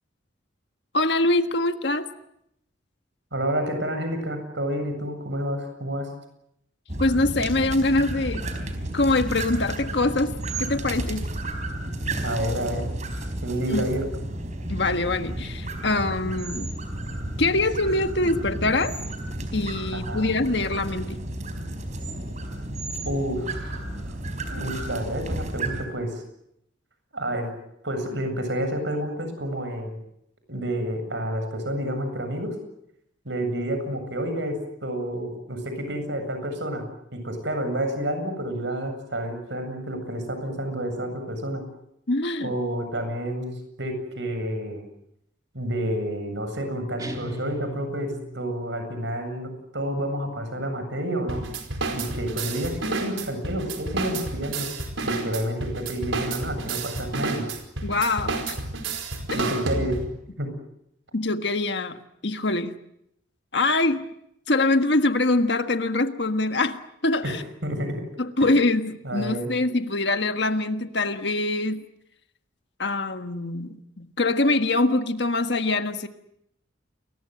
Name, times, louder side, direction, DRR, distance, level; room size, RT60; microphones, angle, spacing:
voice 1, 0.9-2.1 7.0-8.4 8.9-10.3 10.6-11.3 13.7-13.9 14.7-16.7 17.4-18.9 19.5-21.2 42.1-42.5 57.8-58.6 61.1-62.0 62.2-62.7 63.5-64.0 64.5-67.4 68.2-71.8 72.8-76.1, left 2 dB, 60° left, 8 dB, 1.6 m, -24 dB
voice 2, 3.3-6.1 12.2-12.9 13.4-14.1 19.9-20.3 23.0-24.2 24.4-26.2 27.1-27.5 27.8-30.0 30.5-32.6 33.2-36.8 37.1-41.6 42.4-44.8 45.5-51.4 51.9-54.7 55.0-57.4 59.3-60.0 60.4-60.5 67.2-68.0 68.4-68.5 69.0-69.5, right 1 dB, 65° right, 7 dB, 7.8 m, -29 dB
sound 1, 6.9-25.8, right 1 dB, 40° right, 4.4 m, -32 dB
sound 2, 47.0-48.7, right 2 dB, 20° right, 3.1 m, -37 dB
sound 3, 51.3-60.2, right 3 dB, 85° right, 4.8 m, -30 dB
29.5 x 22.0 x 7.8 m, 0.77 s
head